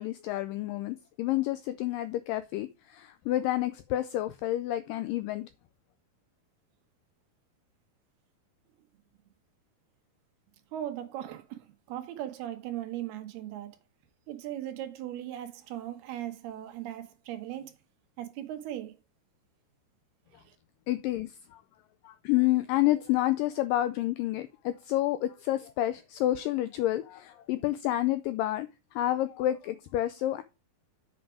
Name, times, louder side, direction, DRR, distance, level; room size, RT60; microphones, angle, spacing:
voice 1, 0.0-5.5 20.9-21.6 22.1-28.7 29.0-30.4, left 14 dB, 85° left, 1.9 m, -29 dB
voice 2, 10.7-13.8 14.3-17.7 18.2-19.0 20.5-20.6, right 12 dB, 85° right, 3.1 m, -38 dB
7.3 x 6.0 x 4.8 m
omnidirectional pair, 4.4 m